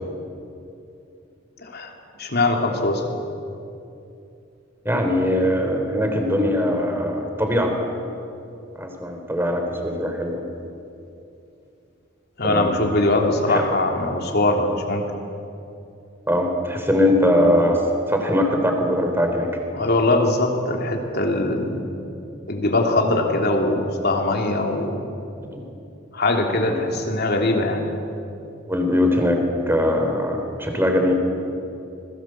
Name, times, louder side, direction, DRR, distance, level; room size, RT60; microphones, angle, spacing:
voice 1, 1.6-1.9 2.2-3.2 12.4-15.1 19.7-21.9 22.5-25.0 26.1-27.9, left 2 dB, 55° left, 2 dB, 3.3 m, -21 dB
voice 2, 4.8-7.7 8.8-10.4 12.4-12.7 13.5-13.6 16.3-17.8 18.1-19.5 25.5-25.6 26.6-26.8 28.7-31.1, left 1 dB, 10° right, 3 dB, 3.8 m, -21 dB
27.0 x 21.5 x 7.8 m, 2.7 s
head